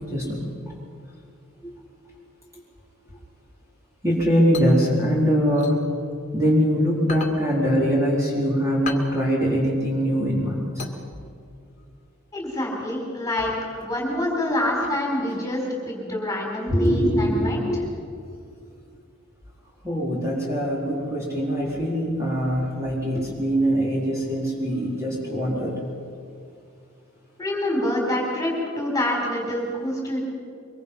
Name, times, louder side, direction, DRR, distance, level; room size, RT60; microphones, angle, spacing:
voice 1, 0.1-0.4 1.6-1.7 4.0-5.8 6.3-10.8 16.7-17.8 19.8-25.7, equal, 15° right, -5 dB, 4.2 m, -22 dB
sound 1, 4.1-6.6 7.0-11.6, left 4 dB, 35° left, 2.2 m, -37 dB
voice 2, 12.3-13.5 13.8-17.6 27.4-30.2, left 1 dB, 15° left, -1 dB, 4.7 m, -26 dB
24.5 x 23.0 x 5.7 m, 2.4 s
head